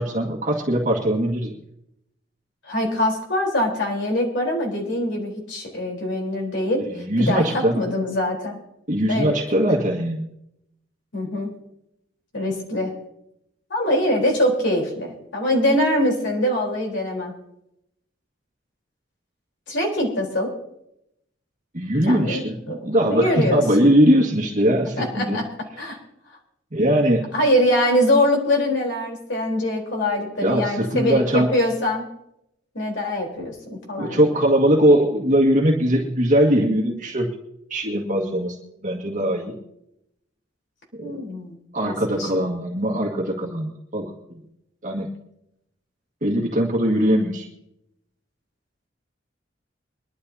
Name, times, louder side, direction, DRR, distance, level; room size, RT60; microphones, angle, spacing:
voice 1, 0.0-1.5 6.8-7.8 8.9-10.2 21.7-25.4 26.7-27.3 30.4-31.5 34.0-37.3 37.7-39.6 41.0-41.2 41.7-44.1 44.8-45.1 46.2-47.5, equal, 45° right, -2 dB, 1.9 m, -20 dB
voice 2, 2.6-6.9 7.2-8.6 9.1-9.4 11.1-11.5 12.3-12.9 13.7-17.3 19.7-20.5 22.1-23.6 25.0-25.5 25.8-26.0 27.3-32.0 32.7-34.2 41.0-42.5, left 1 dB, 70° left, 0 dB, 4.1 m, -23 dB
23.5 x 12.0 x 2.9 m, 0.80 s
head